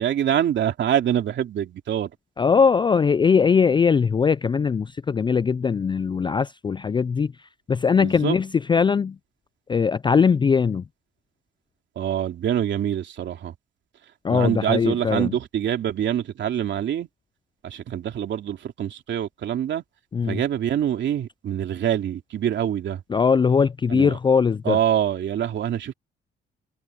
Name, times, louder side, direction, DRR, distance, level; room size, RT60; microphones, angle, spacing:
voice 1, 0.0-2.1 8.0-8.4 12.0-13.5 14.3-17.1 17.6-19.8 20.3-23.0 23.9-24.2 24.6-25.9, right 10 dB, 65° right, 3.0 m, -25 dB
voice 2, 2.4-7.3 7.7-9.2 9.7-10.8 14.2-15.3 20.1-20.4 23.1-24.8, left 6 dB, 25° left, 0.3 m, -20 dB
cardioid pair, 90°, 20 cm